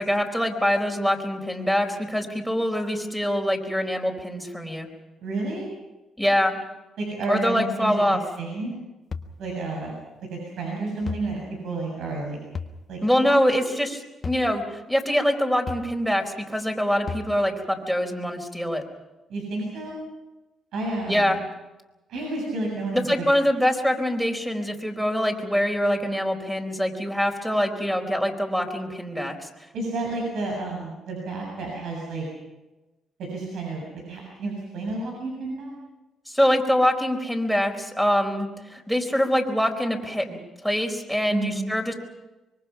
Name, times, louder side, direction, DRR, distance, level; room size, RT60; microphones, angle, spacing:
voice 1, 0.0-4.9 6.2-6.5 7.3-8.2 13.0-18.8 21.1-21.4 22.9-29.5 36.3-41.9, equal, ahead, 4 dB, 4.4 m, -24 dB
voice 2, 5.2-5.7 7.0-8.8 9.4-10.0 10.3-12.4 12.9-13.0 19.3-20.0 20.7-21.4 22.1-23.2 29.7-32.3 33.2-35.7 41.3-41.6, right 2 dB, 75° right, -1 dB, 7.5 m, -31 dB
sound 1, 9.1-9.3 11.1-11.3 12.5-12.8 14.2-14.5 15.7-15.9 17.1-17.4, left 5 dB, 40° left, 1.4 m, -33 dB
25.0 x 23.5 x 5.9 m, 1.1 s
cardioid pair, 90°, 0 cm